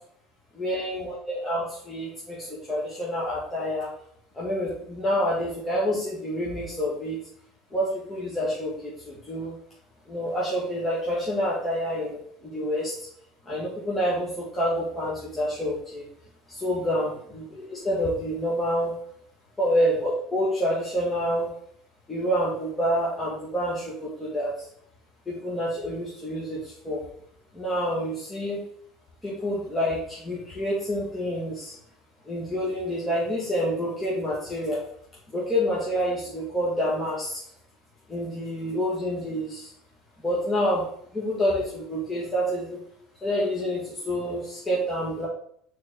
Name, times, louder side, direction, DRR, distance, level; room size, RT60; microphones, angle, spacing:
voice 1, 0.5-3.9 4.3-7.2 7.7-9.6 10.1-12.9 13.5-16.1 16.5-18.9 19.6-21.5 22.1-24.5 25.3-27.0 27.5-28.6 29.2-31.7 32.3-34.9 35.3-37.4 38.1-39.7 40.2-40.9 41.1-42.8 43.2-45.3, equal, 15° left, -7 dB, 2.0 m, -28 dB
6.3 x 4.1 x 3.7 m, 0.66 s
hypercardioid pair, 70°, 0 cm